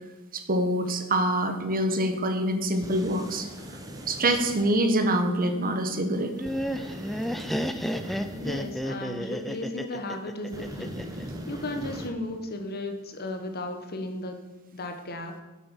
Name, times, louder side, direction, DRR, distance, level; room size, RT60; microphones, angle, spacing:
voice 1, 0.3-3.5 4.1-6.3, right 1 dB, 40° right, 7 dB, 1.3 m, -25 dB
sound 1, 2.7-4.6 6.4-8.7 10.5-12.1, equal, 15° right, 1.4 m, -40 dB
Laughter, 6.2-11.2, equal, ahead, 0.6 m, -32 dB
voice 2, 8.3-14.4 14.7-15.3, left 1 dB, 45° left, 5 dB, 1.4 m, -35 dB
9.6 x 7.9 x 7.1 m, 1.2 s
head